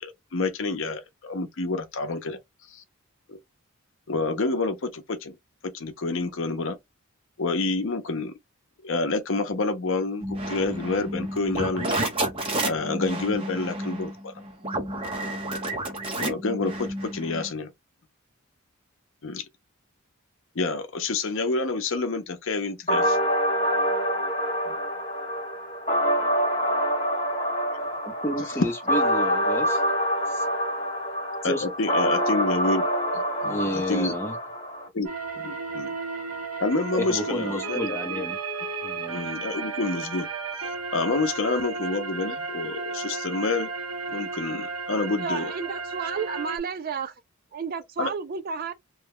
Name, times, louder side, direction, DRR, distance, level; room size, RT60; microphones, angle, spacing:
voice 1, 0.0-2.4 2.7-2.8 3.3-3.4 4.1-5.4 5.6-6.8 7.4-8.3 8.8-11.9 12.6-14.3 16.2-17.7 19.2-19.5 20.5-23.2 24.7-24.8 31.4-32.8 33.1-34.1 34.9-35.1 35.3-36.0 36.6-38.2 39.1-40.3 40.6-40.7 40.9-43.7 44.1-45.5 48.0-48.1, left 3 dB, 60° left, 0.6 m, -28 dB
sound 1, 10.2-17.5, right 1 dB, 25° right, 0.9 m, -31 dB
sound 2, 22.9-34.9, equal, 30° left, 1.3 m, -26 dB
voice 2, 28.0-29.8 30.3-30.5 31.4-31.6 33.4-34.3 36.9-38.4 38.8-39.3, left 1 dB, 10° left, 0.7 m, -31 dB
sound 3, 35.0-46.6, right 4 dB, 85° right, 0.9 m, -33 dB
voice 3, 45.2-47.1 47.5-48.7, right 5 dB, 40° right, 0.4 m, -31 dB
3.1 x 2.2 x 3.5 m
head